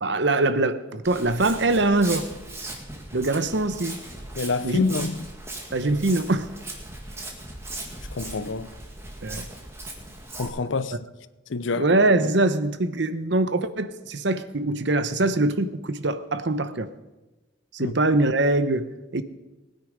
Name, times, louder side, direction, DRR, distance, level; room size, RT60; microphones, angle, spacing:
voice 1, 0.0-2.3 3.1-3.9 4.6-4.8 5.7-6.5 9.2-9.5 11.8-16.9 17.7-19.2, right 2 dB, 60° right, 0.9 m, -23 dB
Walk footsteps, 1.0-10.5, right 2 dB, 15° right, 1.9 m, -38 dB
voice 2, 4.4-5.3 8.1-8.7 10.4-11.0 11.5-11.9 17.8-17.9, left 3 dB, 70° left, 0.7 m, -27 dB
19.5 x 9.7 x 5.2 m
head